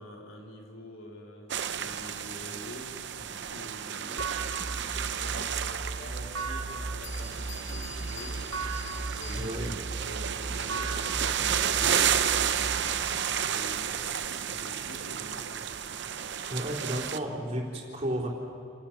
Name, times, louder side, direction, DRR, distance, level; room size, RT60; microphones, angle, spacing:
voice 1, 0.0-4.4 4.7-8.9 9.1-9.7 10.1-14.1 14.5-15.5, equal, 75° left, -1 dB, 3.6 m, -46 dB
sound 1, 1.5-17.2, right 8 dB, 55° right, 0.7 m, -32 dB
sound 2, 4.2-12.9, right 3 dB, 90° right, 1.2 m, -37 dB
Bell, 6.7-6.8 7.0-9.8, left 8 dB, 55° left, 2.4 m, -47 dB
voice 2, 9.3-9.7 16.5-18.3, right 1 dB, 30° right, -4 dB, 3.8 m, -32 dB
28.0 x 13.0 x 8.9 m, 2.5 s
head